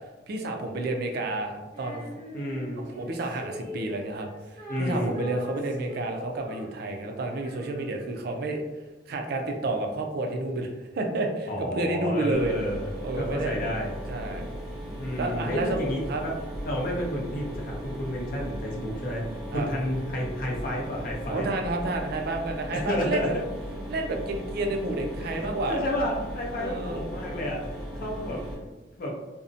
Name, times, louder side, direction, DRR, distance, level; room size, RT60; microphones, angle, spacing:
voice 1, 0.3-2.1 3.0-4.3 4.8-8.6 9.1-12.5 13.0-13.5 14.1-14.5 15.2-15.8 16.1-16.2 18.7-18.8 19.5-19.7 21.3-23.4 23.9-25.8 26.5-27.0, right 2 dB, 55° right, 3 dB, 0.4 m, -30 dB
Female singing, 1.7-8.2, equal, 25° right, 1.2 m, -43 dB
voice 2, 2.3-2.9 4.7-5.2 11.5-14.0 15.0-16.3 16.6-19.2 19.5-21.5 22.7-23.4 25.2-25.3 25.7-27.7 28.0-28.4 29.0-29.2, equal, 50° left, -1 dB, 0.6 m, -31 dB
Mechanisms, 12.3-28.5, equal, ahead, 1.1 m, -37 dB
2.6 x 2.0 x 2.5 m, 1.1 s
head